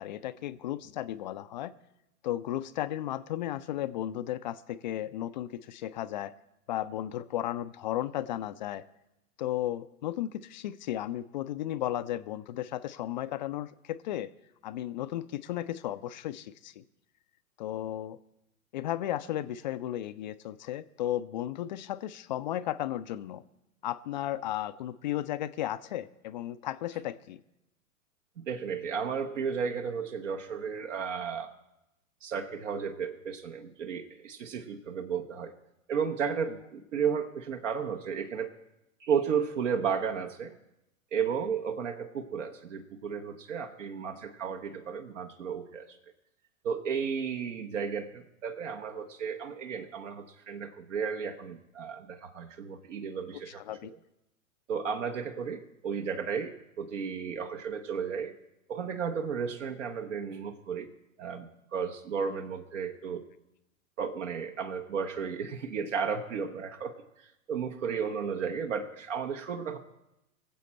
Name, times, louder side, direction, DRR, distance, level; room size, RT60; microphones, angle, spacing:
voice 1, 0.0-1.7 2.2-6.3 6.7-8.8 9.4-14.3 14.6-16.8 17.6-18.2 18.7-23.4 23.8-27.4 53.6-53.9, left 13 dB, 35° left, 14 dB, 0.4 m, -34 dB
voice 2, 28.4-31.5 32.2-35.5 35.9-38.6 39.0-40.5 41.1-45.9 46.6-53.6 53.9-54.0 54.7-58.3 58.7-60.9 61.2-63.2 64.0-69.8, right 6 dB, 60° right, 5 dB, 1.2 m, -33 dB
22.5 x 7.6 x 4.3 m, 0.91 s
figure-of-eight pair, 100°, 42 cm